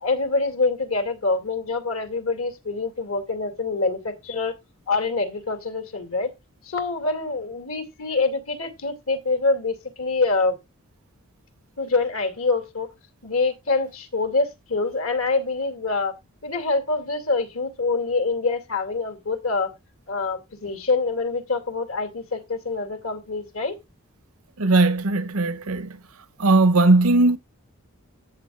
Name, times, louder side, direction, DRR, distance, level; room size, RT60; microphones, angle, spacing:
voice 1, 0.0-4.6 4.9-6.3 6.6-10.6 11.8-12.9 13.2-16.1 16.4-19.7 20.1-23.7, left 3 dB, 70° left, 2.5 m, -25 dB
voice 2, 24.6-25.9 26.4-27.4, right 2 dB, 75° right, 0.9 m, -18 dB
13.5 x 8.6 x 2.4 m
head